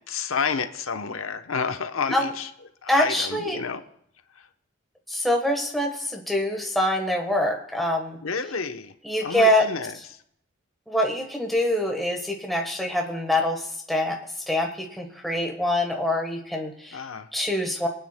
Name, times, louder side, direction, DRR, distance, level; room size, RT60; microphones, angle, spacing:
voice 1, 0.1-2.5 2.8-3.8 4.3-4.5 8.2-8.9 9.2-10.2 16.9-17.3, left 5 dB, 85° left, 8 dB, 0.9 m, -30 dB
voice 2, 2.9-3.6 5.1-8.2 9.0-9.7 10.9-14.2 14.5-17.0 17.3-17.9, left 1 dB, ahead, 1 dB, 1.2 m, -25 dB
24.0 x 9.2 x 2.2 m, 0.72 s
head